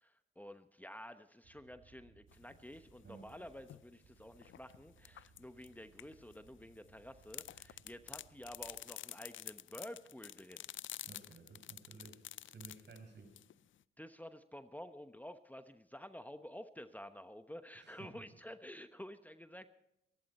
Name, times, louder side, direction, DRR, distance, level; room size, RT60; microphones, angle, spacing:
voice 1, 0.0-10.7 14.0-19.7, left 1 dB, 10° left, 9 dB, 1.0 m, -51 dB
sound 1, 1.4-8.8, right 6 dB, 75° right, 2.2 m, -66 dB
sound 2, 2.3-3.8 4.3-6.5 7.2-13.8, left 11 dB, 70° left, 0.5 m, -49 dB
voice 2, 11.1-13.3 17.7-18.2, right 4 dB, 60° right, 5 dB, 5.6 m, -55 dB
26.0 x 11.5 x 4.3 m, 0.85 s
cardioid pair, 60°, 21 cm